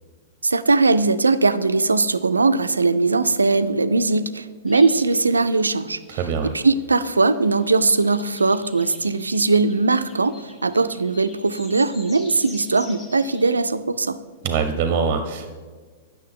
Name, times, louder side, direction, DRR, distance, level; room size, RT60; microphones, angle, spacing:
voice 1, 0.4-6.2 6.5-14.2, right 3 dB, 85° right, 13 dB, 0.3 m, -20 dB
sound 1, 4.7-13.7, left 2 dB, 20° left, 0.9 m, -46 dB
voice 2, 6.1-6.5 14.4-15.5, right 6 dB, 40° right, 7 dB, 0.6 m, -23 dB
9.2 x 6.3 x 3.7 m, 1.5 s
figure-of-eight pair, 105°, 0 cm